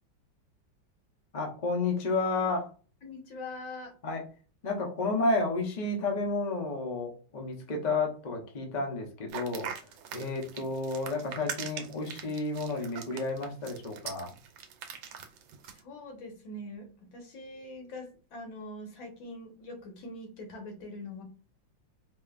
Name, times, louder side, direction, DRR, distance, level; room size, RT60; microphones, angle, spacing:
voice 1, 1.3-2.7 4.0-4.2 4.6-9.7 10.1-14.3, left 3 dB, 45° left, 1 dB, 0.5 m, -31 dB
voice 2, 3.0-3.9 15.6-21.2, left 2 dB, 70° left, 3 dB, 1.9 m, -43 dB
sound 1, 9.3-15.8, right 8 dB, 75° right, 1.4 m, -41 dB
4.7 x 2.8 x 2.4 m, 0.36 s
omnidirectional pair, 2.2 m